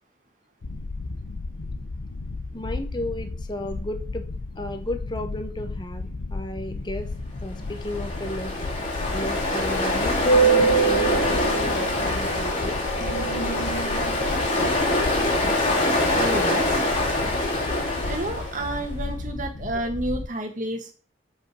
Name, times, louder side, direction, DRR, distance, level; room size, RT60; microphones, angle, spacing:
sound 1, 0.6-20.3, left 3 dB, 90° left, 0.7 m, -34 dB
voice 1, 2.5-4.2 4.6-7.1 7.4-8.5 9.1-12.8, left 1 dB, 25° left, 7 dB, 0.9 m, -34 dB
Ocean, 7.7-18.8, equal, 40° left, 2.3 m, -23 dB
voice 2, 16.1-16.8 18.0-20.9, right 1 dB, 45° right, 4 dB, 1.5 m, -30 dB
7.5 x 5.3 x 4.8 m, 0.37 s
head